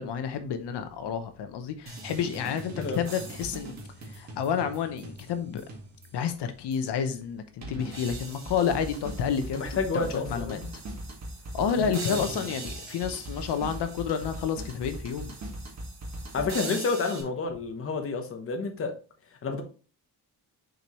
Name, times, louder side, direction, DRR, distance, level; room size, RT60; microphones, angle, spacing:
voice 1, 0.0-3.8 4.1-5.6 6.1-10.6 11.5-15.3, left 7 dB, 80° left, 0.9 m, -30 dB
sound 1, 1.9-6.3 6.7-6.8 7.6-17.2, right 2 dB, 40° right, 1.8 m, -39 dB
voice 2, 9.5-10.7 11.8-12.2 16.3-18.9 19.4-19.6, left 4 dB, 35° left, 1.0 m, -30 dB
6.6 x 4.6 x 3.0 m
wide cardioid pair, 170°, 41 cm